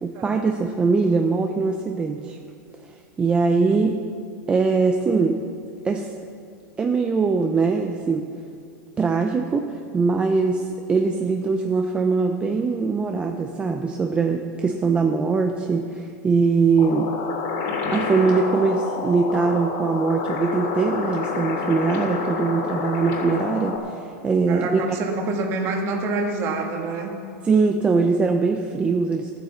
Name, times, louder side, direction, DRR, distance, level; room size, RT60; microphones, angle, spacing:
voice 1, 0.0-2.4 3.2-4.0 4.5-5.4 5.8-6.1 6.8-8.3 9.0-17.1 17.9-24.9 27.4-29.4, right 4 dB, 10° right, 4 dB, 0.5 m, -22 dB
sound 1, 16.8-23.8, left 5 dB, 50° left, 2.4 m, -28 dB
voice 2, 24.5-27.1, right 3 dB, 30° right, 2 dB, 1.7 m, -27 dB
13.5 x 9.3 x 7.1 m, 2.4 s
supercardioid pair, 165°, 9 cm